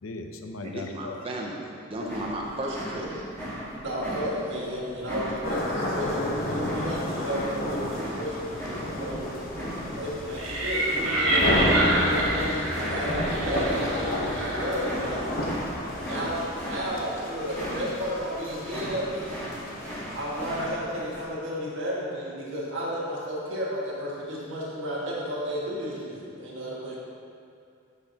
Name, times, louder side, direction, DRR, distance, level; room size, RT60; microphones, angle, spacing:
voice 1, 0.0-1.2 2.0-2.1, left 3 dB, 85° left, 5 dB, 0.6 m, -37 dB
voice 2, 0.6-3.1 12.8-13.7, right 1 dB, 25° right, -1 dB, 0.6 m, -35 dB
sound 1, 1.9-21.2, equal, 10° left, 1.7 m, -38 dB
voice 3, 3.5-9.2 10.0-15.3 16.0-19.3 20.1-26.9, equal, 65° right, -6 dB, 1.8 m, -33 dB
sound 2, 5.4-20.7, left 1 dB, 45° left, 1.0 m, -31 dB
sound 3, 10.4-15.2, right 1 dB, 85° right, 1.3 m, -27 dB
9.6 x 6.0 x 2.9 m, 2.5 s
head